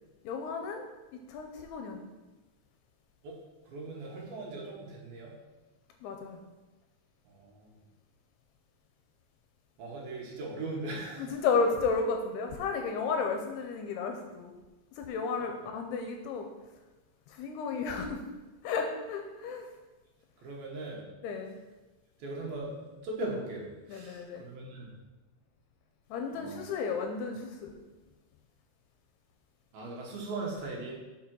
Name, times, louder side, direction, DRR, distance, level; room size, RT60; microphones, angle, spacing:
voice 1, 0.2-0.8 1.1-2.1 6.0-6.4 11.2-14.6 15.0-16.5 17.3-18.2 18.6-19.7 21.2-21.5 23.9-24.4 26.1-27.7, left 4 dB, 80° left, 4 dB, 2.5 m, -33 dB
voice 2, 3.2-5.4 7.3-7.8 9.8-11.3 15.4-15.7 20.4-21.1 22.2-22.7 23.0-24.9 26.3-26.6 29.7-30.9, right 2 dB, 65° right, -2 dB, 2.9 m, -39 dB
7.2 x 5.1 x 6.1 m, 1.2 s
omnidirectional pair, 5.0 m